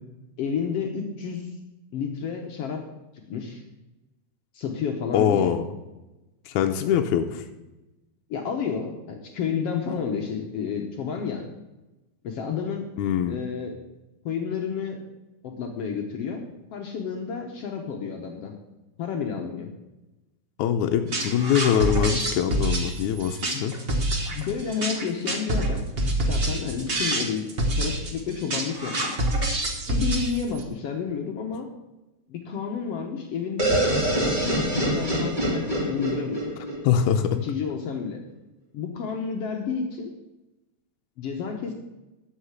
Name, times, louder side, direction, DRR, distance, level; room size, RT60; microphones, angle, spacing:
voice 1, 0.4-1.5 1.9-2.8 3.3-3.6 4.5-5.6 8.3-11.5 12.2-12.9 13.3-13.8 14.2-15.0 15.4-16.4 16.7-18.5 19.0-19.7 23.5-23.6 24.3-25.8 26.3-27.4 27.8-29.1 29.9-31.7 32.3-36.4 37.4-38.2 38.7-40.1 41.2-41.7, left 6 dB, 65° left, 2 dB, 1.8 m, -30 dB
voice 2, 5.1-5.7 6.5-7.4 13.0-13.4 20.6-23.7 36.8-37.4, left 9 dB, 85° left, 4 dB, 2.1 m, -23 dB
sound 1, 21.1-30.6, right 1 dB, 40° right, 0.8 m, -26 dB
sound 2, 33.6-37.4, right 1 dB, 15° right, 2.3 m, -25 dB
11.5 x 5.7 x 8.1 m, 1.0 s
omnidirectional pair, 3.5 m